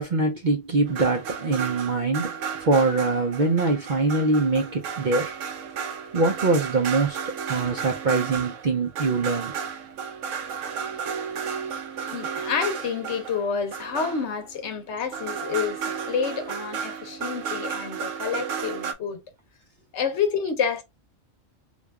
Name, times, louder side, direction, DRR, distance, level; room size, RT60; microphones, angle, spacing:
voice 1, 0.0-2.3 2.6-5.3 6.1-7.2 7.5-9.5, right 3 dB, 50° right, 0.6 m, -23 dB
sound 1, 0.9-14.7 15.1-18.9, right 6 dB, 80° right, 1.0 m, -33 dB
voice 2, 12.1-15.8 16.1-19.2 19.9-20.8, left 6 dB, 65° left, 1.0 m, -28 dB
3.3 x 2.3 x 3.3 m
omnidirectional pair, 1.3 m